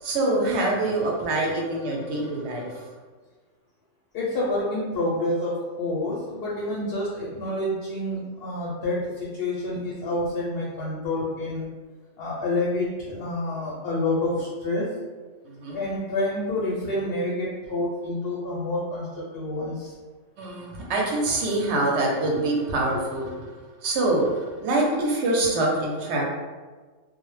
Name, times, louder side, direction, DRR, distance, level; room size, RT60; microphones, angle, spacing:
voice 1, 0.0-2.8 15.4-15.8 20.4-23.3 23.8-24.3 24.6-26.2, right 2 dB, 65° right, -1 dB, 0.8 m, -25 dB
voice 2, 4.1-11.7 12.2-14.9 15.7-19.9 23.4-23.5, left 1 dB, 60° left, -5 dB, 0.7 m, -28 dB
2.1 x 2.0 x 3.0 m, 1.4 s
omnidirectional pair, 1.3 m